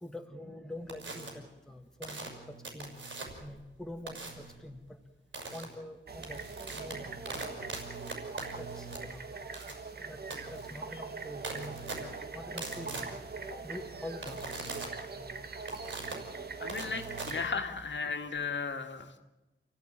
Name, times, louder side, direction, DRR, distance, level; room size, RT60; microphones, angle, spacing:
voice 1, 0.0-2.9 3.4-4.8 5.5-6.4 6.7-7.5 8.0-8.1 8.6-9.4 10.0-10.2 10.5-13.1 13.5-14.6 15.2-15.4 16.4-16.9, left 1 dB, 5° left, 4 dB, 1.9 m, -46 dB
sound 1, 0.9-1.3 2.0-3.5 4.1-4.5 5.3-5.6 6.1-18.0, right 3 dB, 70° right, 6.4 m, -42 dB
sound 2, 6.1-17.5, right 4 dB, 50° right, 1.7 m, -42 dB
voice 2, 16.6-19.2, left 5 dB, 65° left, 6 dB, 2.3 m, -36 dB
29.0 x 16.5 x 9.0 m, 1.0 s
wide cardioid pair, 145°, 21 cm